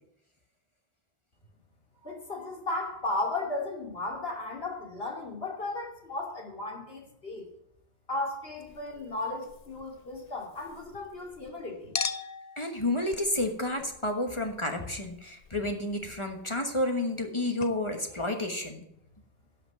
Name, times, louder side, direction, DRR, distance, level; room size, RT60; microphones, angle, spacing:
voice 1, 2.0-7.5 8.1-11.9, left 2 dB, 75° left, -1 dB, 3.0 m, -35 dB
Chink clink, 8.6-11.5 11.9-17.3 17.6-17.7, left 6 dB, 45° left, 0.7 m, -42 dB
voice 2, 12.6-18.8, left 1 dB, 30° left, 3 dB, 1.3 m, -30 dB
11.5 x 5.9 x 7.6 m, 0.79 s
omnidirectional pair, 1.0 m